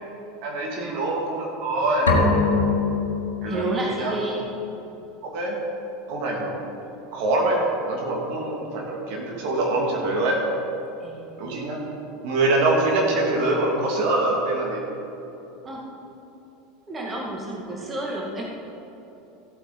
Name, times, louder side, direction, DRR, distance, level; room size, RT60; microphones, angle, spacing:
voice 1, 0.4-2.1 3.4-4.1 5.2-5.6 6.1-6.6 7.1-7.6 7.9-10.4 11.4-11.8 12.2-14.8, right 2 dB, 55° right, -1 dB, 2.4 m, -24 dB
sound 1, 2.1-3.9, left 4 dB, 80° left, 1.4 m, -22 dB
voice 2, 3.5-4.5 11.0-11.5 15.6-15.8 16.9-18.4, right 2 dB, 25° right, -2 dB, 2.1 m, -31 dB
15.5 x 8.3 x 4.0 m, 3.0 s
figure-of-eight pair, 80°, 0 cm